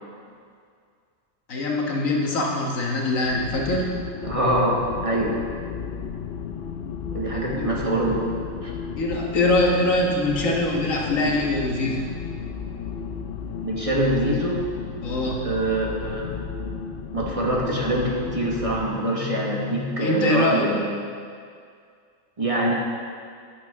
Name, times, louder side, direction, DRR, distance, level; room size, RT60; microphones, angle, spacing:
voice 1, 1.5-4.0 7.6-7.7 9.0-12.0 15.0-15.5 20.0-20.7, left 2 dB, 85° left, -2 dB, 1.8 m, -23 dB
sound 1, 3.2-18.9, left 6 dB, 60° left, 0.7 m, -33 dB
voice 2, 4.2-5.3 7.1-8.2 8.6-8.7 13.6-14.6 15.3-16.4 17.1-21.0 22.4-22.7, right 1 dB, 25° right, -3 dB, 1.3 m, -24 dB
10.5 x 8.9 x 3.6 m, 2.2 s
omnidirectional pair, 1.4 m